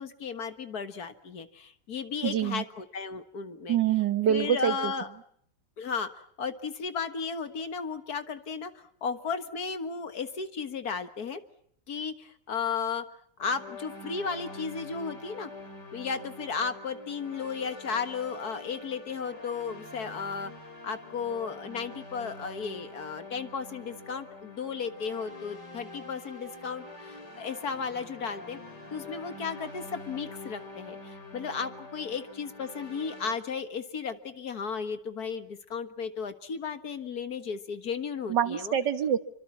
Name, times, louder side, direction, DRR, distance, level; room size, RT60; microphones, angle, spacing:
voice 1, 0.0-3.8 4.3-5.1 5.8-11.4 11.9-13.0 13.4-15.5 15.9-20.5 20.8-28.6 28.9-38.8, left 5 dB, 60° left, 9 dB, 2.1 m, -34 dB
voice 2, 2.2-2.6 3.7-4.9 38.3-39.2, right 9 dB, 80° right, 11 dB, 2.0 m, -25 dB
sound 1, 13.4-33.3, left 2 dB, 75° left, 4.4 m, -45 dB
28.0 x 24.5 x 7.3 m, 0.65 s
omnidirectional pair, 1.9 m